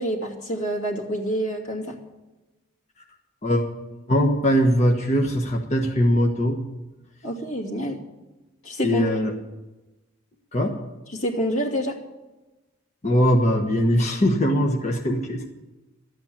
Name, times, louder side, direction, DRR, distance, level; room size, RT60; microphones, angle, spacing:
voice 1, 0.0-2.0 7.2-8.0 8.6-9.1 11.1-11.9, equal, 85° left, -1 dB, 2.7 m, -27 dB
voice 2, 3.4-6.6 8.8-9.3 10.5-10.8 13.0-15.5, equal, 30° left, 1 dB, 1.3 m, -21 dB
13.5 x 8.9 x 8.4 m, 1.1 s
head